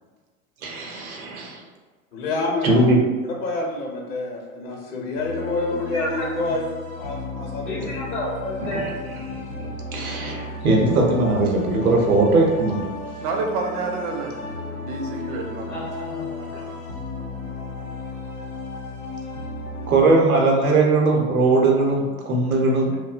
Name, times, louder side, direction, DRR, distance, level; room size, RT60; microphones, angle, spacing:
voice 1, 0.6-1.6 2.6-3.0 9.3-12.9 16.5-16.7 19.9-22.9, right 2 dB, 85° right, -1 dB, 0.7 m, -20 dB
voice 2, 2.1-3.0 3.2-8.0, left 2 dB, 55° left, -1 dB, 0.7 m, -28 dB
sound 1, 5.1-20.0, left 3 dB, 90° left, 0.6 m, -34 dB
voice 3, 5.7-6.5 7.6-8.9 15.7-16.4, equal, 15° left, -6 dB, 0.4 m, -31 dB
voice 4, 13.2-15.8, right 3 dB, 40° right, 2 dB, 0.5 m, -29 dB
2.6 x 2.1 x 2.3 m, 1.4 s
hypercardioid pair, 85°, 42 cm